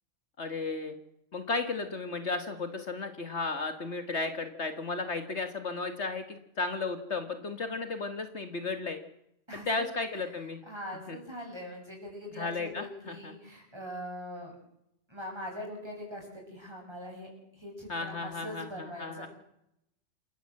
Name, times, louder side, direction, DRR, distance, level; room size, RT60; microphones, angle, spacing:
voice 1, 0.4-1.0 1.3-9.0 9.7-10.6 11.1-11.2 12.4-13.3 17.9-19.3, left 3 dB, 60° left, 8 dB, 1.9 m, -34 dB
voice 2, 9.5-14.5 15.1-19.3, equal, 20° right, 0 dB, 8.0 m, -42 dB
28.0 x 13.5 x 7.7 m, 0.80 s
omnidirectional pair, 1.4 m